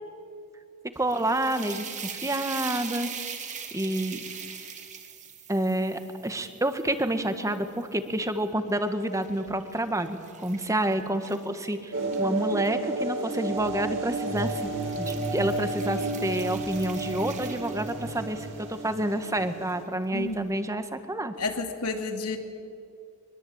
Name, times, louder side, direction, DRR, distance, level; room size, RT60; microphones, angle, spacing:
voice 1, 0.9-1.9 2.1-3.1 3.7-4.2 5.5-14.7 15.0-21.3, right 1 dB, 15° right, 9 dB, 1.6 m, -29 dB
sound 1, 0.9-8.2 8.7-12.7 13.6-13.8 14.2-18.4, right 7 dB, 35° right, 2.5 m, -42 dB
sound 2, 11.9-19.8, right 2 dB, 60° right, 4.3 m, -31 dB
voice 2, 20.1-20.5 21.4-22.4, left 3 dB, 90° left, 4 dB, 2.8 m, -31 dB
23.5 x 22.5 x 8.8 m, 2.4 s
head